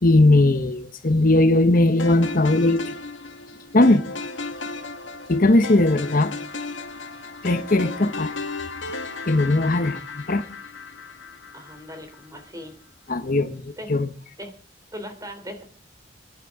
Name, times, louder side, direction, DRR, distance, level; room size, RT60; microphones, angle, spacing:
voice 1, 0.0-3.0 3.7-4.0 5.3-6.3 7.4-8.3 9.3-10.4 13.1-14.1, left 2 dB, 45° left, 1.1 m, -19 dB
sound 1, 2.0-12.3, left 3 dB, 80° left, 1.9 m, -35 dB
voice 2, 11.5-12.8 13.8-13.9 14.4-14.5 14.9-15.6, equal, 20° right, 3.2 m, -38 dB
29.5 x 10.5 x 3.7 m
head